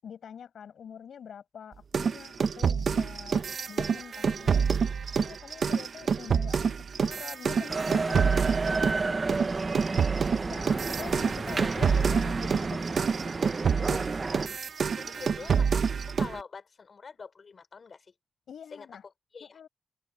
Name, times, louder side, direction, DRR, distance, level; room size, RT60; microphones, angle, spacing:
voice 1, 0.0-4.7 5.1-8.3 8.7-9.4 10.4-13.3 18.5-19.0 19.4-19.7, left 8 dB, 85° left, 7.0 m, -45 dB
sound 1, 1.9-9.0 9.3-16.4, right 6 dB, 65° right, 1.2 m, -27 dB
sound 2, 7.7-14.5, right 3 dB, 35° right, 1.2 m, -31 dB
voice 2, 13.7-14.0 14.4-18.2 18.7-19.6, left 5 dB, 55° left, 4.9 m, -45 dB
open air
cardioid pair, 90°, 0 cm